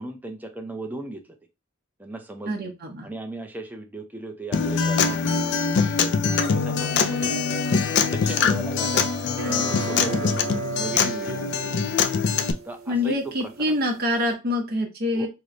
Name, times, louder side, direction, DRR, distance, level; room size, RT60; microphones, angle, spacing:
voice 1, 0.0-1.4 2.0-2.7 3.0-5.4 5.8-6.1 6.4-9.1 9.4-11.6 12.6-13.7 15.1-15.3, right 2 dB, 10° right, 4 dB, 0.5 m, -37 dB
voice 2, 2.5-3.1 12.9-15.3, left 1 dB, 50° right, 2 dB, 0.8 m, -25 dB
Acoustic guitar, 4.5-12.5, left 5 dB, 55° left, 0.4 m, -23 dB
Domestic sounds home sounds, 6.3-11.5 11.8-11.9, left 3 dB, 85° left, 1.0 m, -40 dB
sound 1, 9.3-14.3, right 5 dB, 85° right, 0.6 m, -35 dB
3.1 x 2.1 x 3.7 m, 0.27 s
head